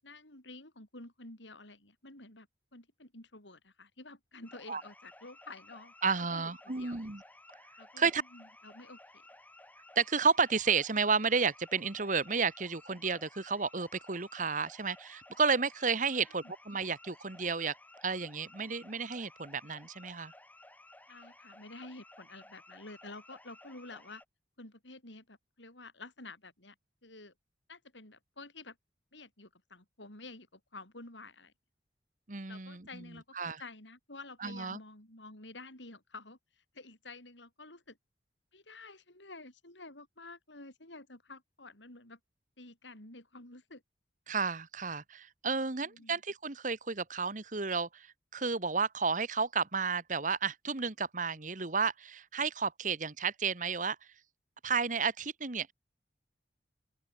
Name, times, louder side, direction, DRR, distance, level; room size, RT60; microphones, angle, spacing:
voice 1, 0.0-5.9 6.3-7.0 7.8-9.0 16.3-16.5 21.1-24.2 24.6-26.8 27.0-27.3 27.7-28.8 29.1-31.5 32.5-36.4 36.7-38.0 38.5-42.2 42.6-43.8 45.7-46.2, left 2 dB, 85° left, 7.5 m, -50 dB
sound 1, 4.4-24.3, left 2 dB, 10° left, 7.3 m, -56 dB
voice 2, 6.0-7.2 8.0-8.2 9.9-17.7 18.0-20.3 32.3-33.1 33.3-33.6 34.4-34.8 44.3-48.1 48.3-54.0 54.6-55.7, right 5 dB, 45° right, 1.4 m, -32 dB
open air
head